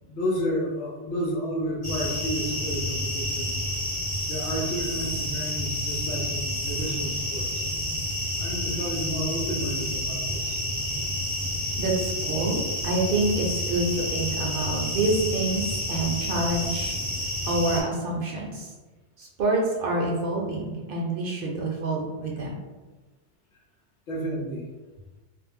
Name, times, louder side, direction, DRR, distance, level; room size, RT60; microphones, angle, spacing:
voice 1, 0.0-3.5 4.3-7.6 8.4-10.6 24.1-24.7, equal, 85° left, -2 dB, 1.1 m, -31 dB
sound 1, 1.8-17.8, left 1 dB, 30° left, 0.9 m, -29 dB
voice 2, 11.8-17.0 17.4-18.7 19.2-22.6, right 2 dB, 60° right, -2 dB, 0.7 m, -27 dB
2.6 x 2.0 x 3.5 m, 1.2 s
omnidirectional pair, 1.2 m